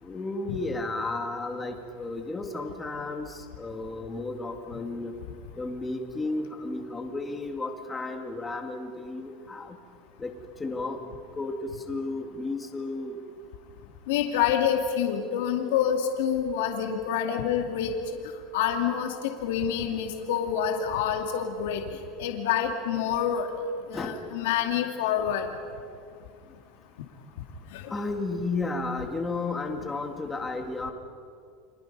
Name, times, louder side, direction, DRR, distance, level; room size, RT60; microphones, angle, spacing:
voice 1, 0.0-5.1 5.6-9.8 10.2-10.3 10.6-11.0 11.3-13.2 23.9-24.2 27.9-30.9, left 3 dB, 10° left, 3 dB, 2.1 m, -33 dB
voice 2, 14.1-17.9 18.5-21.8 22.2-23.5 23.9-25.5 27.7-27.9, left 9 dB, 80° left, 3 dB, 2.4 m, -27 dB
30.0 x 26.0 x 5.5 m, 2.3 s
supercardioid pair, 160°, 0 cm